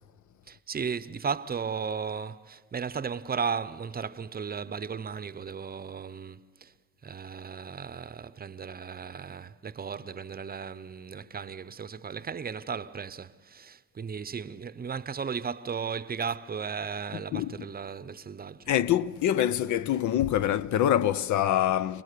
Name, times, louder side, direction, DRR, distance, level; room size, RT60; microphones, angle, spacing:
voice 1, 0.5-6.7 7.0-18.7, right 6 dB, 30° right, 0.7 m, -35 dB
voice 2, 17.1-17.7 18.7-22.0, left 11 dB, 75° left, 0.7 m, -25 dB
29.0 x 19.5 x 6.8 m
cardioid pair, 90°, 30 cm